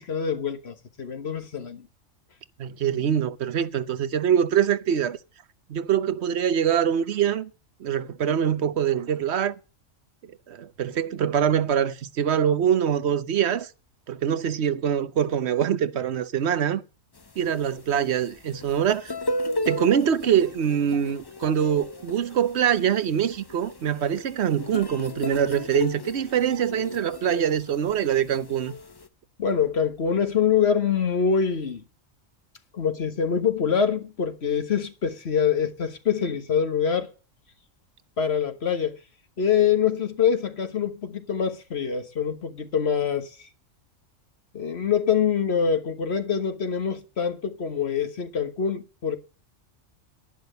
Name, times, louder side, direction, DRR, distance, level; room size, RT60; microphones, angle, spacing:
voice 1, 0.0-1.9 29.4-31.8 32.7-37.1 38.2-39.0 39.4-43.5 44.5-49.2, left 7 dB, 55° left, 1.5 m, -25 dB
voice 2, 2.6-5.2 5.7-7.5 7.8-9.5 10.5-13.7 14.1-16.8 17.4-19.1 19.7-28.7, right 9 dB, 60° right, 1.1 m, -24 dB
sound 1, 17.2-29.1, left 1 dB, 25° left, 0.5 m, -35 dB
11.0 x 10.0 x 6.7 m
omnidirectional pair, 1.3 m